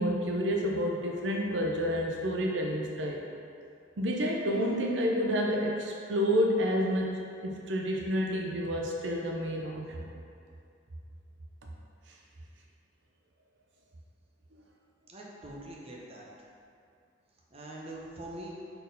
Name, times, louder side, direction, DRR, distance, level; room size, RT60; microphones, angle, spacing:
voice 1, 0.0-3.2 4.0-10.1, equal, 80° right, 0 dB, 0.6 m, -29 dB
voice 2, 15.1-16.3 17.5-18.6, right 1 dB, 35° right, -3 dB, 0.8 m, -43 dB
4.4 x 4.1 x 5.2 m, 2.4 s
head